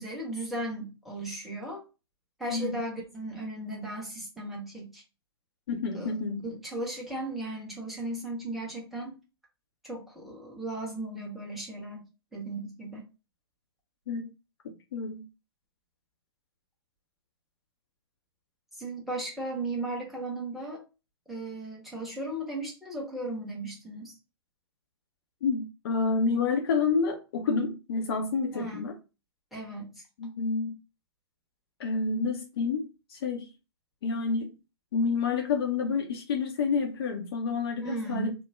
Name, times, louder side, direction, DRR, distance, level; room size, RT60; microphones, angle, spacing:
voice 1, 0.0-1.8 2.4-5.0 5.9-6.1 6.4-9.2 9.8-12.0 12.3-13.0 18.8-20.8 21.3-24.1 28.5-28.9 29.5-30.0 37.8-38.3, right 2 dB, ahead, 1.1 m, -36 dB
voice 2, 2.5-2.8 5.7-6.4 14.1-14.3 14.9-15.3 25.4-28.9 30.2-30.8 31.8-33.5 34.0-34.5 34.9-38.3, left 4 dB, 60° left, 0.6 m, -29 dB
3.1 x 2.1 x 3.3 m
hypercardioid pair, 125°, 14 cm